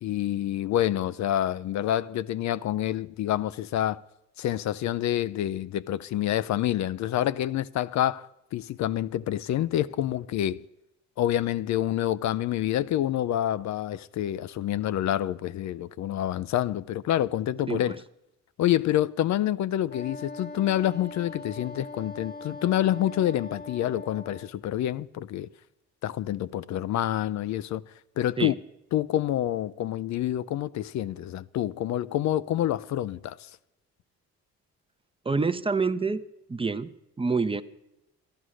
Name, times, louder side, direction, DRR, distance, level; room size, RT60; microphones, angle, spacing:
voice 1, 0.0-4.0 4.4-10.6 11.2-18.0 18.6-25.5 26.0-27.8 28.2-28.5 28.9-33.5, left 12 dB, 65° left, 0.5 m, -27 dB
Wind instrument woodwind instrument, 19.9-24.5, left 3 dB, 30° left, 1.0 m, -41 dB
voice 2, 35.2-36.2 36.5-36.9 37.2-37.6, right 4 dB, 20° right, 0.6 m, -27 dB
12.5 x 11.5 x 6.3 m
cardioid pair, 90°, 30 cm